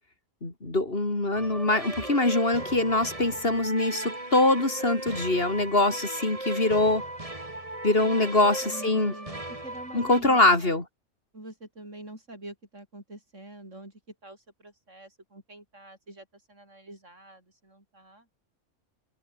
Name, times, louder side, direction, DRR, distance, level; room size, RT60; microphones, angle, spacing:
voice 1, 0.4-7.0 7.8-9.1 9.9-10.8, left 2 dB, 50° left, 4.1 m, -23 dB
sound 1, 1.3-10.2, right 1 dB, 25° right, 3.4 m, -37 dB
voice 2, 8.0-10.8 11.3-18.3, right 1 dB, 75° right, 8.0 m, -46 dB
omnidirectional pair, 1.3 m